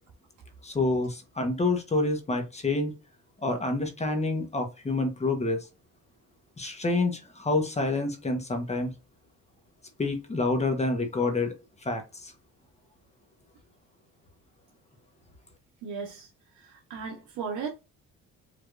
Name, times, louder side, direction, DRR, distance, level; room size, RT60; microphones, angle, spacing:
voice 1, 0.6-2.9 3.4-5.6 6.6-8.9 10.0-11.5 11.8-12.3, left 2 dB, 20° left, 1.1 m, -28 dB
voice 2, 15.8-16.3 16.6-17.7, right 5 dB, 80° right, 1.1 m, -36 dB
4.9 x 3.0 x 2.5 m
cardioid pair, 105°, 30 cm